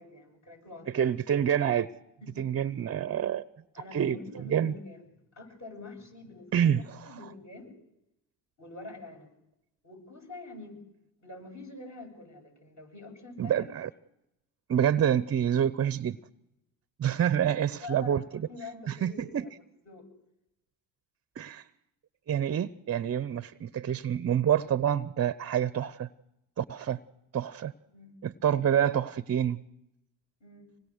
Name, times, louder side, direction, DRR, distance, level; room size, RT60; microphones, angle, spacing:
voice 1, 0.0-1.1 2.2-2.5 3.8-5.1 5.3-7.7 8.6-9.3 9.8-10.8 11.2-13.6 17.8-19.5 19.8-20.1 27.8-28.2 30.4-30.7, left 3 dB, 40° left, 2 dB, 7.9 m, -46 dB
voice 2, 0.9-1.9 2.4-3.4 3.9-4.2 4.5-4.7 6.5-6.8 13.4-13.9 14.7-16.2 17.0-18.5 18.9-19.5 21.4-21.6 22.3-26.1 26.6-27.0 27.3-27.7 28.2-29.6, right 9 dB, 35° right, 16 dB, 0.7 m, -27 dB
26.0 x 20.0 x 6.5 m, 0.87 s
supercardioid pair, 75°, 44 cm